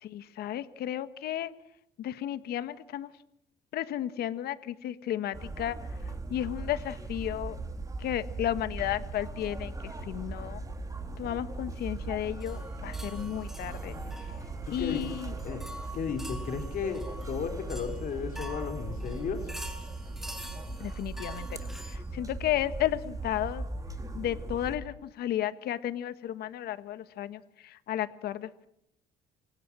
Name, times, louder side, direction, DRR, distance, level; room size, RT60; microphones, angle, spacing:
voice 1, 0.0-1.5 2.0-3.1 3.7-5.8 6.3-7.6 8.0-10.6 11.2-14.0 14.7-15.3 20.8-21.6 21.9-23.6 24.1-28.7, left 12 dB, 70° left, 13 dB, 1.4 m, -33 dB
sound 1, 5.3-24.8, right 2 dB, 20° right, 4.1 m, -39 dB
sound 2, 12.4-22.0, equal, ahead, 6.5 m, -47 dB
voice 2, 14.7-15.1 15.4-15.6 15.9-19.5, left 6 dB, 55° left, 5 dB, 4.1 m, -34 dB
29.0 x 25.0 x 6.2 m, 0.78 s
cardioid pair, 110°, 17 cm